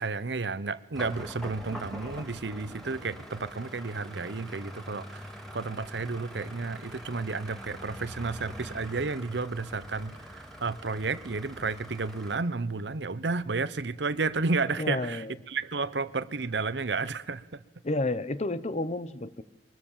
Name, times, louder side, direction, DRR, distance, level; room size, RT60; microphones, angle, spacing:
voice 1, 0.0-17.6, right 4 dB, 80° right, 16 dB, 0.9 m, -32 dB
sound 1, 0.9-12.4, equal, ahead, 3.0 m, -44 dB
voice 2, 14.8-15.3 17.8-19.4, left 2 dB, 40° left, 15 dB, 0.9 m, -30 dB
23.0 x 20.0 x 7.4 m, 1.1 s
head